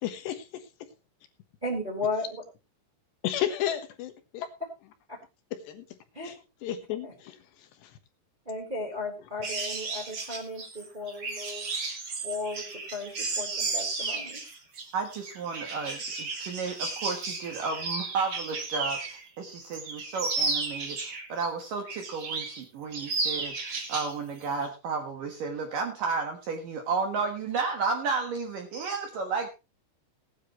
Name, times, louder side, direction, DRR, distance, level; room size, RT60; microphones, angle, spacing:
voice 1, 0.0-0.4 3.2-4.5 5.7-5.8 6.2-6.4 6.6-7.4, left 11 dB, 70° left, 9 dB, 3.1 m, -32 dB
voice 2, 1.6-2.4 6.1-6.3 7.0-7.1 8.5-11.7 12.2-14.4, left 2 dB, 10° right, -2 dB, 3.8 m, -35 dB
sound 1, 9.4-19.2 19.6-21.5 21.9-22.6 22.9-24.1 24.4-24.7, right 3 dB, 40° right, 2.0 m, -33 dB
voice 3, 14.9-23.6 23.9-29.5, right 4 dB, 60° right, 4 dB, 2.4 m, -32 dB
19.5 x 9.8 x 3.1 m, 0.27 s
omnidirectional pair, 5.7 m